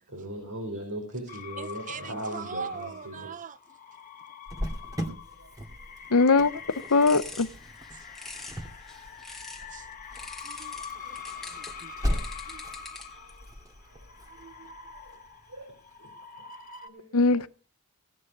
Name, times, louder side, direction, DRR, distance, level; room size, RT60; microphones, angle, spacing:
voice 1, 0.1-3.3 5.3-5.5 11.3-11.6 13.1-13.5 13.8-14.1 14.9-15.2 15.5-16.1 16.8-17.2, right 1 dB, 75° right, 5.0 m, -39 dB
sound 1, 1.3-16.9, left 6 dB, 40° left, 1.3 m, -45 dB
voice 2, 1.6-3.6 7.9-8.0 9.7-9.9 10.4-10.8 11.0-11.2 11.5-11.9 12.5-12.6 14.3-14.7 17.4-17.5, right 6 dB, 35° right, 0.6 m, -41 dB
Cricket, 4.5-15.9, equal, 15° right, 2.3 m, -38 dB
voice 3, 6.1-6.5 6.9-7.5 17.1-17.5, left 3 dB, 70° left, 0.8 m, -20 dB
sound 2, 6.7-9.7 10.2-13.3, left 2 dB, ahead, 2.2 m, -45 dB
17.0 x 9.8 x 5.2 m
head